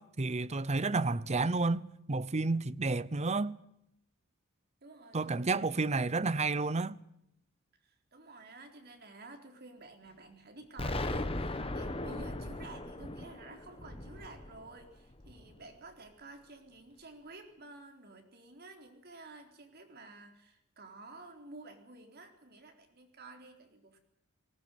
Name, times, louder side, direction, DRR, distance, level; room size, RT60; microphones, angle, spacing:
voice 1, 0.0-3.6 5.1-7.0, right 3 dB, 30° right, 0.8 m, -31 dB
voice 2, 4.8-5.4 5.6-6.0 7.7-24.0, right 2 dB, 50° right, 3.9 m, -52 dB
Explosion, 10.8-15.6, left 1 dB, 25° left, 1.5 m, -38 dB
19.5 x 18.0 x 9.2 m
head